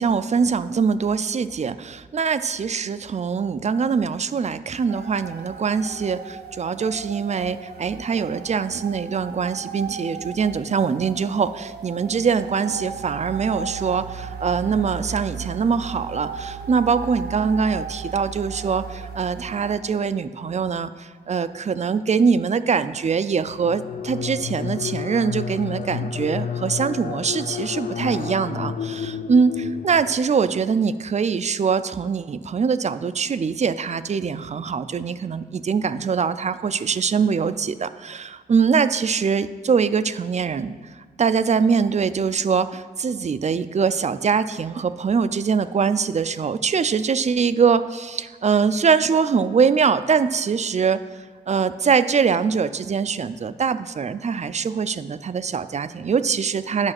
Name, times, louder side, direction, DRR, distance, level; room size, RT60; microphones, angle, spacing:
voice 1, 0.0-56.9, right 6 dB, 45° right, 13 dB, 0.4 m, -23 dB
sound 1, 4.9-19.8, right 6 dB, 75° right, 0.8 m, -36 dB
sound 2, 23.5-30.4, left 7 dB, 50° left, 0.5 m, -31 dB
8.9 x 5.6 x 5.9 m, 1.4 s
cardioid pair, 80°, 17 cm